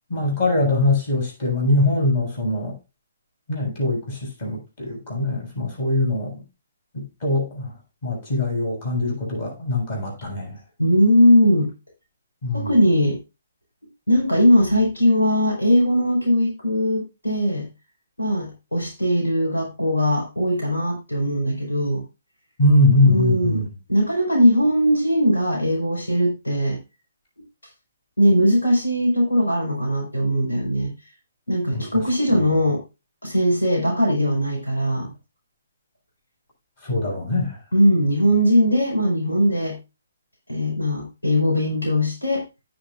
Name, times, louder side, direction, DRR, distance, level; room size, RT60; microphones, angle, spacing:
voice 1, 0.1-2.8 3.5-6.4 6.9-7.7 8.0-10.6 12.4-12.7 22.6-23.7 31.7-32.0 32.3-32.6 36.8-37.6, left 1 dB, 35° left, 7.2 m, -22 dB
voice 2, 10.8-11.7 12.5-13.2 14.1-17.6 18.2-22.0 23.0-23.6 23.9-26.8 28.2-30.9 31.5-32.8 33.2-35.1 37.7-39.8 40.5-42.4, equal, 75° left, 5.1 m, -20 dB
17.5 x 7.0 x 2.5 m
figure-of-eight pair, 130°, 0 cm